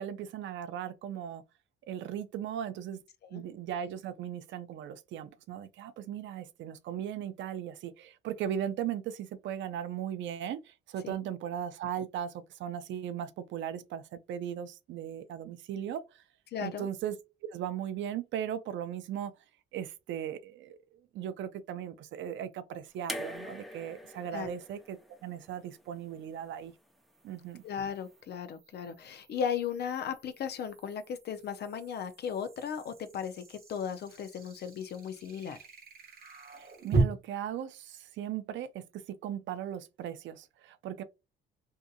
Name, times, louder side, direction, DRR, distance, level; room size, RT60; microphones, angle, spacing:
voice 1, 0.0-1.4 1.9-3.0 3.3-16.2 16.6-17.2 17.5-19.4 19.7-26.7 27.2-27.6 36.6-41.0, right 9 dB, 70° right, 0.4 m, -38 dB
voice 2, 16.5-16.9 24.3-24.5 27.6-35.6, left 7 dB, 55° left, 0.4 m, -36 dB
sound 1, 23.1-26.2 27.4-27.5, equal, ahead, 0.6 m, -43 dB
sound 2, 23.4-23.5 26.9-37.0, right 3 dB, 50° right, 0.9 m, -39 dB
2.7 x 2.5 x 2.3 m
cardioid pair, 90°, 20 cm